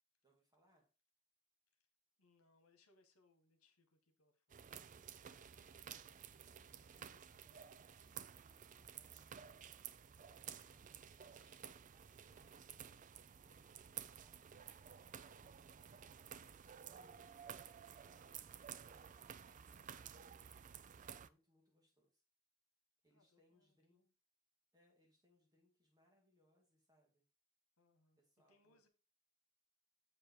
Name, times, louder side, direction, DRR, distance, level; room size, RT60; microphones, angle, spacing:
voice 1, 0.2-0.9 5.8-7.7 8.3-12.7 13.4-15.9 16.4-20.3 21.1-22.2 23.0-24.1 24.7-27.2 28.2-28.9, left 1 dB, 15° right, 1.9 m, -77 dB
voice 2, 2.2-4.8 23.1-24.1 27.8-28.2 28.5-28.9, left 3 dB, 75° left, 1.6 m, -75 dB
sound 1, 4.5-21.3, right 8 dB, 35° right, 0.4 m, -54 dB
7.5 x 4.9 x 4.6 m
head